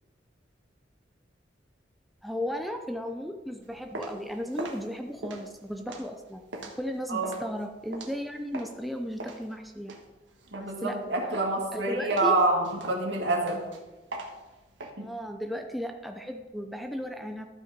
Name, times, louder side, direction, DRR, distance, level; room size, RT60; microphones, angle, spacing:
voice 1, 2.2-6.4 6.8-9.9 10.6-11.0 11.7-12.3 15.0-17.5, equal, ahead, 4 dB, 0.5 m, -35 dB
sound 1, 3.6-8.8 9.2-11.0 11.3-11.7 12.1-14.9, right 2 dB, 90° right, 1.5 m, -41 dB
voice 2, 10.5-13.6 15.0-15.1, right 2 dB, 70° right, 0 dB, 2.3 m, -27 dB
12.5 x 5.8 x 5.1 m, 1.1 s
head